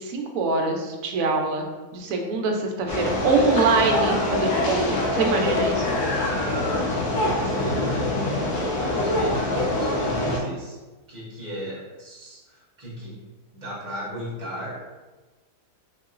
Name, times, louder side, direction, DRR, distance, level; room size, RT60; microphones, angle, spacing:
voice 1, 0.0-1.7 1.9-5.9, right 3 dB, 70° right, 2 dB, 0.9 m, -24 dB
sound 1, 2.9-10.4, left 2 dB, 75° left, 1.2 m, -24 dB
voice 2, 6.5-8.1 8.7-10.8 11.1-13.2 13.5-14.8, right 1 dB, 35° right, -7 dB, 0.9 m, -34 dB
3.7 x 2.8 x 2.5 m, 1.2 s
omnidirectional pair, 1.7 m